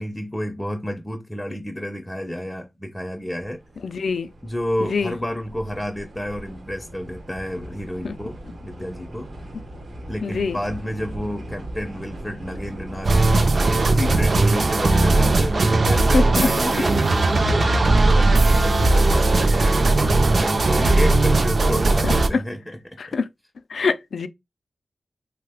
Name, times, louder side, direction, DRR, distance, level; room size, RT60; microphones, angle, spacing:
voice 1, 0.0-3.6 4.4-9.3 10.1-23.2, equal, 5° left, 0.4 m, -30 dB
sound 1, 3.3-19.2, right 1 dB, 85° right, 0.9 m, -37 dB
voice 2, 3.8-4.3 4.8-5.2 8.0-8.2 10.2-10.6 16.1-16.5 22.0-22.4 23.0-23.3 23.7-24.3, left 4 dB, 85° left, 0.3 m, -24 dB
sound 2, 13.0-22.3, right 2 dB, 55° right, 0.4 m, -18 dB
3.2 x 2.0 x 3.4 m
wide cardioid pair, 95°, 0 cm